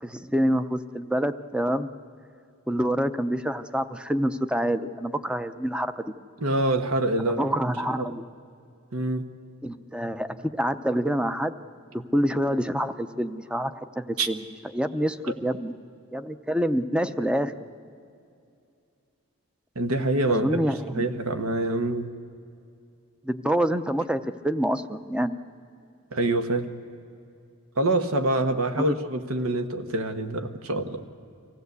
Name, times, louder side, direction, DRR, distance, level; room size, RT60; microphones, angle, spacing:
voice 1, 0.0-1.9 2.7-6.1 7.2-8.3 9.6-11.5 11.9-14.5 14.7-15.7 16.1-17.5 20.3-21.1 23.2-25.4 28.8-29.0, equal, 5° right, 12 dB, 0.6 m, -27 dB
voice 2, 6.4-7.5 8.0-8.1 8.9-9.2 14.2-14.3 19.7-20.6 20.9-22.1 26.1-26.7 27.8-31.0, right 2 dB, 80° right, 9 dB, 1.2 m, -25 dB
24.5 x 16.0 x 8.2 m, 2.5 s
head